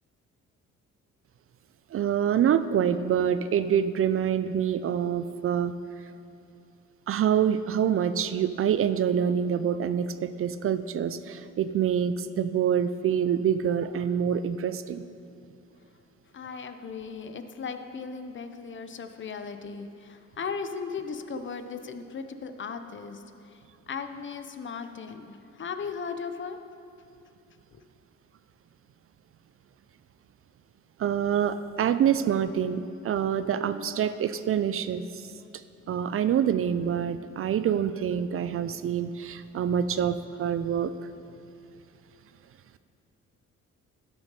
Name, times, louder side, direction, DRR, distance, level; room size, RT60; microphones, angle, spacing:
voice 1, 1.9-5.7 7.1-15.0 31.0-35.2 35.9-40.9, right 8 dB, 45° right, 12 dB, 0.4 m, -26 dB
voice 2, 16.3-23.2 23.5-23.6 23.9-26.6 27.7-27.8, left 5 dB, 40° left, 8 dB, 0.7 m, -37 dB
12.5 x 6.1 x 5.4 m, 2.6 s
cardioid pair, 90°, 30 cm